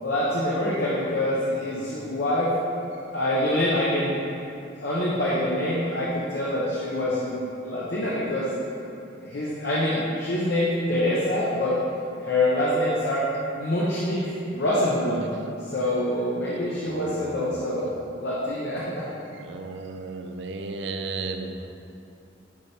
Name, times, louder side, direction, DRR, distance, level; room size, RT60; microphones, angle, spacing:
voice 1, 0.0-2.5 3.1-4.2 4.8-7.4 7.6-8.5 9.2-11.8 12.2-13.3 13.6-15.3 15.7-17.9 18.2-19.0, left 1 dB, 65° left, -7 dB, 1.0 m, -25 dB
voice 2, 16.8-17.9 19.3-21.7, right 3 dB, 65° right, 6 dB, 0.5 m, -34 dB
9.9 x 4.2 x 3.5 m, 2.6 s
head